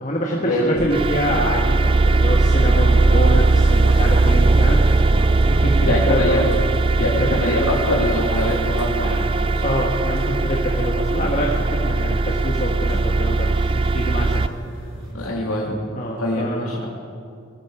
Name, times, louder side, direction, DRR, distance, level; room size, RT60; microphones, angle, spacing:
voice 1, 0.0-4.8 5.5-6.3 7.0-7.1 7.4-7.6 9.6-14.4 15.9-16.8, equal, 35° left, -1 dB, 1.3 m, -25 dB
sound 1, 0.8-14.5, right 3 dB, 25° right, 0.3 m, -19 dB
sound 2, 1.8-15.1, right 1 dB, 75° right, 3.5 m, -37 dB
sound 3, 2.6-9.8, right 2 dB, 50° right, 1.8 m, -38 dB
voice 2, 5.8-6.5 7.0-9.3 15.1-15.8 16.2-16.9, left 1 dB, 90° left, -2 dB, 2.8 m, -23 dB
19.5 x 12.5 x 4.9 m, 2.3 s
head